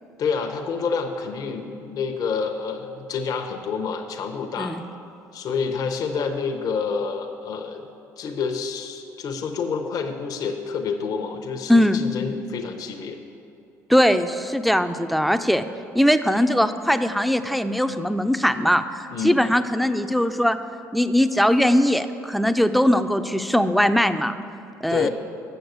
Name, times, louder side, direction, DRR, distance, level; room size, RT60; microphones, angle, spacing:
voice 1, 0.2-4.8 5.3-7.9 8.2-13.2 19.1-19.5 24.9-25.1, left 5 dB, 60° left, 4 dB, 0.8 m, -28 dB
voice 2, 11.7-12.0 13.9-15.7 15.9-20.6 20.9-24.3 24.8-25.1, equal, ahead, 10 dB, 0.5 m, -20 dB
7.9 x 6.4 x 7.9 m, 2.6 s
supercardioid pair, 75°, 7 cm